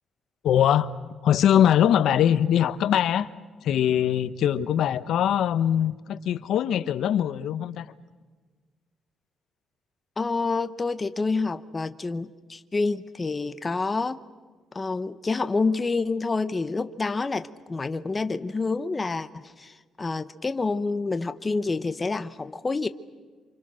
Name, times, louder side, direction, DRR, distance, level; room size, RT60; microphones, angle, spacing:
voice 1, 0.4-0.9 1.2-3.3 3.6-7.9, left 10 dB, 75° left, 13 dB, 1.0 m, -22 dB
voice 2, 10.2-14.2 14.7-22.9, left 3 dB, 25° left, 11 dB, 1.0 m, -28 dB
29.0 x 26.0 x 6.4 m, 1.4 s
cardioid pair, 90°, 0 cm